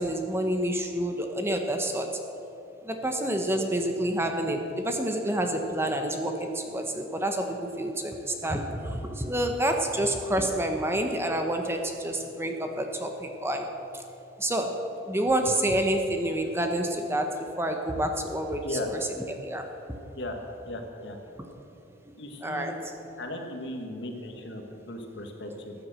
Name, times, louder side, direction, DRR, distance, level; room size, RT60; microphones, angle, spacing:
voice 1, 0.0-2.1 2.9-8.1 8.4-13.7 14.4-14.8 15.1-18.6 19.4-19.6 22.4-22.8, right 1 dB, 15° right, 4 dB, 1.0 m, -28 dB
voice 2, 20.7-21.2 22.2-22.7 23.2-25.7, left 1 dB, 60° left, 3 dB, 1.7 m, -37 dB
14.5 x 9.4 x 7.6 m, 3.0 s
head